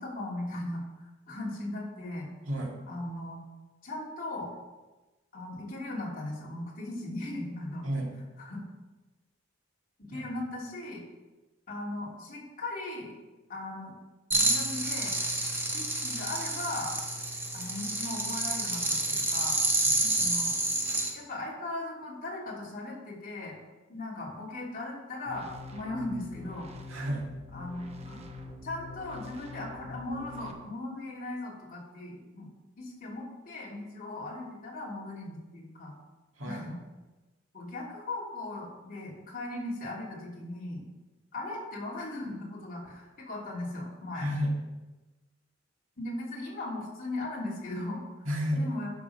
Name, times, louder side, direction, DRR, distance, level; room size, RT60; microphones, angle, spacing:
voice 1, 0.0-2.3 2.9-3.4 3.8-4.5 5.3-7.9 8.4-8.6 10.1-11.0 11.7-13.2 13.5-13.9 14.3-15.2 15.7-16.9 17.5-19.6 20.2-20.5 21.1-23.6 23.9-26.7 27.5-28.2 28.6-32.5 32.8-35.9 36.4-36.8 37.5-40.8 41.3-44.3 46.0-48.0 48.5-48.9, left 2 dB, 45° left, -4 dB, 3.2 m, -38 dB
sound 1, 14.3-21.1, right 2 dB, 10° right, 1.5 m, -29 dB
voice 2, 19.9-20.4 26.9-27.3 36.4-36.7 44.2-44.5 48.2-48.7, equal, 75° right, -1 dB, 2.3 m, -32 dB
sound 2, 25.2-30.5, left 2 dB, 35° right, 1.0 m, -45 dB
11.5 x 5.5 x 5.9 m, 1.1 s
head